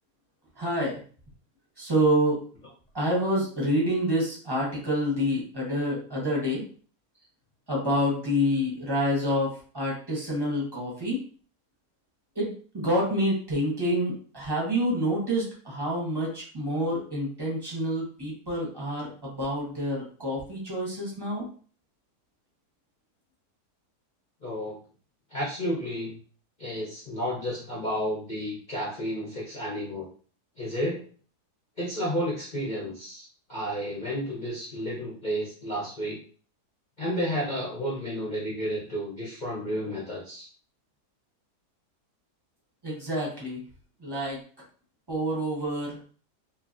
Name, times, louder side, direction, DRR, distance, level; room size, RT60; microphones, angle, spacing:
voice 1, 0.6-1.0 1.8-2.5 2.9-6.6 7.7-11.2 12.3-21.5 42.8-43.6 44.0-44.4 45.1-46.0, equal, 20° right, -4 dB, 0.7 m, -27 dB
voice 2, 24.4-24.8 25.3-26.1 26.6-30.1 30.6-31.0 31.8-36.2 37.0-40.5, equal, 45° left, -6 dB, 0.6 m, -31 dB
2.9 x 2.5 x 2.5 m, 0.42 s
omnidirectional pair, 1.8 m